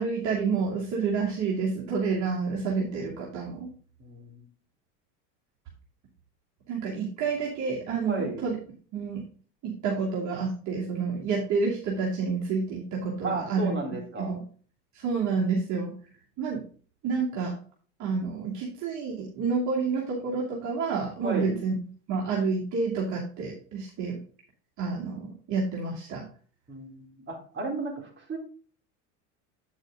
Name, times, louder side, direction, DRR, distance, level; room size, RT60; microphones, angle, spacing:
voice 1, 0.0-3.7 6.7-8.6 8.9-9.2 9.6-13.7 14.2-14.4 14.9-15.9 16.4-16.6 17.0-17.6 18.0-21.7 22.1-24.2 24.8-26.2, right 5 dB, 50° right, -4 dB, 2.6 m, -29 dB
voice 2, 4.0-4.5 8.1-8.4 13.2-14.4 21.2-21.6 26.7-28.4, right 3 dB, 30° right, 0 dB, 3.9 m, -34 dB
8.9 x 6.3 x 3.8 m, 0.42 s
supercardioid pair, 110°, 37 cm